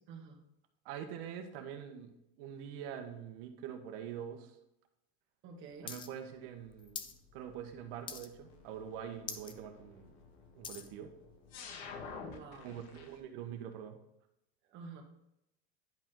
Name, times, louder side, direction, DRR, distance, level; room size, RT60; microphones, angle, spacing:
voice 1, 0.1-0.4 5.4-5.9 12.2-12.8 14.6-15.0, right 5 dB, 40° right, 1 dB, 1.6 m, -49 dB
voice 2, 0.8-2.1 2.4-4.5 5.8-7.1 7.3-10.1 10.5-11.1 12.6-14.0, right 9 dB, 65° right, 6 dB, 1.3 m, -44 dB
sound 1, 5.9-6.1 6.3-7.2 7.5-7.8 8.1-8.5 8.9-9.0 9.2-9.5 10.0-10.9 11.6-11.7, left 6 dB, 15° left, 0.4 m, -44 dB
sound 2, 6.6-13.2, left 5 dB, 75° left, 1.5 m, -51 dB
10.5 x 5.0 x 3.9 m, 0.83 s
cardioid pair, 165°, 31 cm